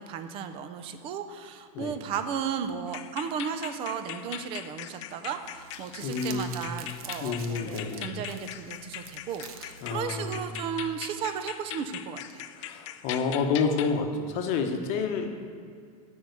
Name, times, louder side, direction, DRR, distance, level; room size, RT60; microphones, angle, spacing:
voice 1, 0.0-12.5, right 7 dB, 30° right, 9 dB, 0.6 m, -35 dB
sound 1, 2.9-14.0, left 11 dB, 55° left, 0.5 m, -41 dB
Crumpling crinkling, 5.4-10.5, right 7 dB, 75° right, 0.9 m, -47 dB
voice 2, 6.0-6.7 7.2-8.1 9.8-10.5 12.6-15.3, left 5 dB, 35° left, 5 dB, 1.0 m, -29 dB
9.5 x 5.5 x 8.0 m, 2.2 s
supercardioid pair, 165°, 19 cm